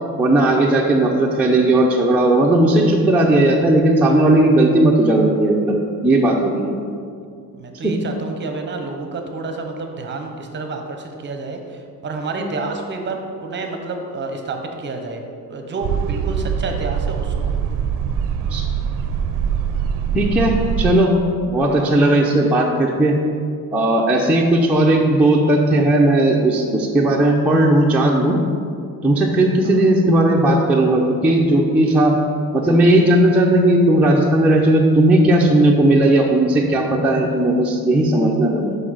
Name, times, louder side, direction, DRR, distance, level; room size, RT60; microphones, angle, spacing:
voice 1, 0.2-6.7 7.8-7.9 12.4-12.5 18.5-18.6 20.1-21.1 21.5-23.1 23.7-28.4 29.0-32.1 32.5-38.8, right 1 dB, 5° right, -3 dB, 0.5 m, -16 dB
voice 2, 7.5-15.2 15.5-17.5 21.7-22.5 29.6-29.8, right 3 dB, 30° right, 4 dB, 0.8 m, -29 dB
sound 1, 15.8-21.0, right 7 dB, 60° right, 0.5 m, -23 dB
5.9 x 5.3 x 6.3 m, 2.3 s
cardioid pair, 155°, 36 cm